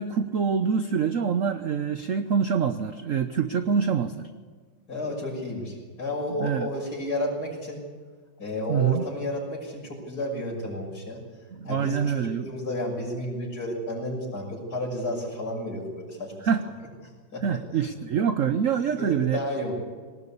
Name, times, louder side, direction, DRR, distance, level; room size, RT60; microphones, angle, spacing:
voice 1, 0.0-4.3 6.4-6.7 8.7-9.0 11.5-12.5 16.4-16.6 17.4-19.4, right 7 dB, 55° right, 9 dB, 0.9 m, -25 dB
voice 2, 4.9-7.8 8.4-11.2 11.6-16.5 17.3-17.6 19.0-19.7, left 1 dB, 50° left, -1 dB, 6.7 m, -32 dB
22.0 x 19.0 x 8.5 m, 1.5 s
omnidirectional pair, 2.2 m